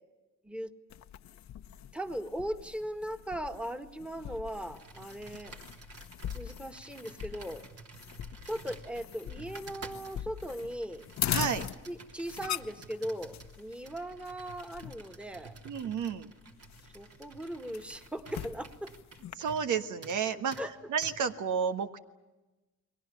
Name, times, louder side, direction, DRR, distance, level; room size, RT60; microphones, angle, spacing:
sound 1, 0.9-19.4, left 10 dB, 65° left, 1.0 m, -42 dB
voice 1, 1.9-5.6 6.3-7.6 8.4-11.0 11.9-15.5 16.9-18.9 20.6-20.7, equal, 5° right, 7 dB, 1.8 m, -38 dB
Computer keyboard, 4.7-19.7 20.0-20.2 20.5-20.7 21.0-21.2, right 4 dB, 50° right, 3.1 m, -51 dB
voice 2, 11.3-11.7 15.7-16.3 19.3-20.6 20.9-22.0, right 7 dB, 75° right, 8 dB, 1.5 m, -31 dB
30.0 x 22.0 x 7.1 m, 1.1 s
cardioid pair, 90°, 30 cm